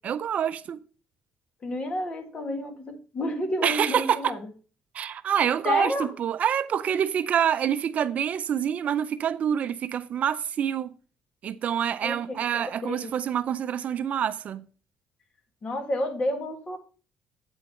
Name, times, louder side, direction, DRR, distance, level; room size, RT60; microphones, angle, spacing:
voice 1, 0.0-0.8 3.6-4.4 4.9-10.9 11.4-14.7, right 9 dB, 50° right, 0.5 m, -26 dB
voice 2, 1.6-4.4 5.6-6.1 12.0-13.1 15.6-16.8, left 1 dB, 35° left, 1.6 m, -30 dB
8.6 x 4.6 x 5.6 m
cardioid pair, 125°, 3 cm